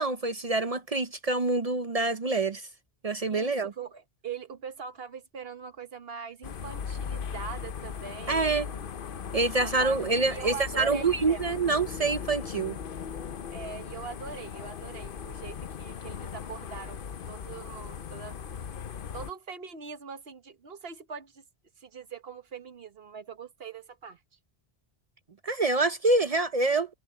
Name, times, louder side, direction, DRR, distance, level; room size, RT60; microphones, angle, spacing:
voice 1, 0.0-2.7 3.0-3.7 8.3-8.7 9.3-12.8 25.4-27.0, right 3 dB, 40° right, 0.7 m, -26 dB
voice 2, 3.3-8.9 9.6-11.6 13.5-18.4 19.1-21.4 21.8-24.2, right 6 dB, 70° right, 1.4 m, -42 dB
sound 1, 6.4-19.3, left 7 dB, 60° left, 0.9 m, -38 dB
omnidirectional pair, 1.1 m